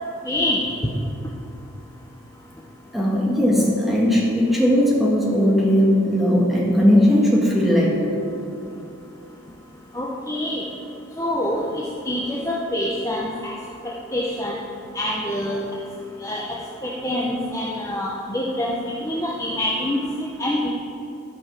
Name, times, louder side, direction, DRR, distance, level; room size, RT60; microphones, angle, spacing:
voice 1, 0.2-0.6 9.9-10.6 11.2-13.3 14.1-14.6 14.9-15.6 16.2-16.4 16.8-18.7 19.0-20.7, left 1 dB, 15° left, -4 dB, 0.7 m, -25 dB
voice 2, 2.9-8.0, equal, ahead, -4 dB, 1.5 m, -18 dB
11.5 x 5.5 x 6.0 m, 2.7 s
head